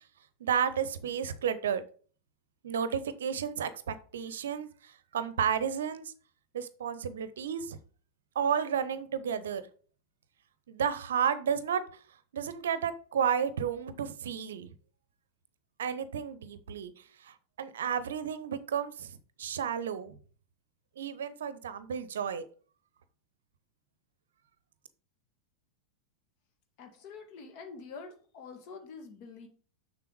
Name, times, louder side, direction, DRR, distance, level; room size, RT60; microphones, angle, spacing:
voice 1, 0.4-1.8 2.6-6.1 6.5-7.8 8.3-9.6 10.7-12.0 12.3-14.7 15.8-20.1 21.0-22.4, right 8 dB, 60° right, 14 dB, 0.7 m, -32 dB
voice 2, 26.8-29.5, left 5 dB, 45° left, 5 dB, 2.1 m, -46 dB
6.9 x 6.5 x 4.7 m, 0.42 s
figure-of-eight pair, 90°, 0 cm